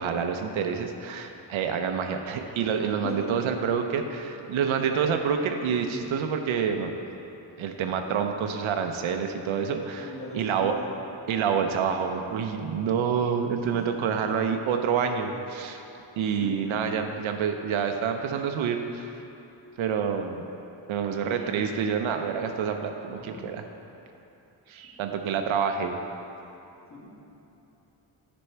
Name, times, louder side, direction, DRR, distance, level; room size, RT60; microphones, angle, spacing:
voice 1, 0.0-6.9 7.6-10.7 11.3-15.8 16.2-19.2 19.8-20.4 20.9-23.6 24.7-26.0, right 7 dB, 80° right, 5 dB, 0.7 m, -27 dB
voice 2, 2.8-3.3 4.0-4.1 5.8-6.0 10.0-10.9 16.4-16.7 23.1-23.4 26.9-27.2, left 1 dB, 25° left, -4 dB, 1.4 m, -39 dB
9.9 x 5.3 x 4.5 m, 2.9 s
wide cardioid pair, 165°, 47 cm